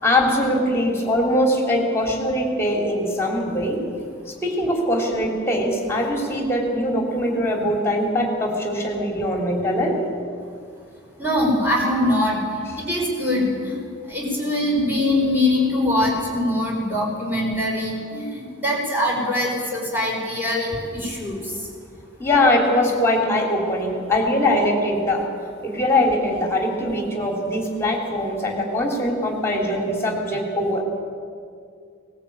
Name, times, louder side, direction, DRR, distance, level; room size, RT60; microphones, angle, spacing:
voice 1, 0.0-3.8 4.3-10.0 22.2-25.3 25.6-30.8, left 1 dB, 15° left, 0 dB, 3.3 m, -22 dB
voice 2, 11.2-13.8 14.1-21.4, left 1 dB, 10° right, -3 dB, 5.4 m, -23 dB
20.0 x 19.5 x 8.6 m, 2.3 s
head